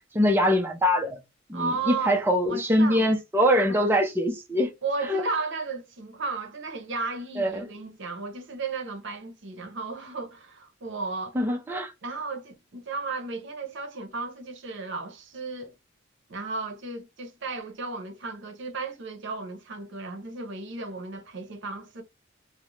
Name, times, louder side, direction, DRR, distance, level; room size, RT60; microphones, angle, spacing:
voice 1, 0.1-1.2 1.5-4.7 5.1-5.2 7.4-7.7 11.3-11.9, equal, 10° right, 0.4 m, -23 dB
voice 2, 1.5-3.1 3.7-3.8 4.8-11.4 12.0-15.7 16.3-22.0, right 3 dB, 65° right, 0.7 m, -34 dB
2.4 x 2.1 x 3.0 m
head